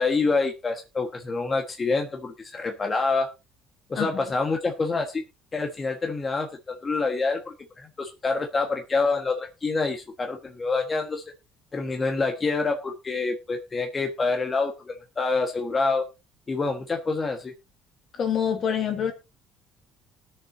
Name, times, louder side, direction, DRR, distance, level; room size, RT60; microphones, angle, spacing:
voice 1, 0.0-3.3 3.9-5.2 5.5-11.2 11.7-16.1 16.5-17.5, left 3 dB, 30° left, 1.5 m, -27 dB
voice 2, 18.1-19.1, left 8 dB, 50° left, 2.2 m, -25 dB
19.5 x 7.0 x 2.8 m
supercardioid pair, 85°, 0 cm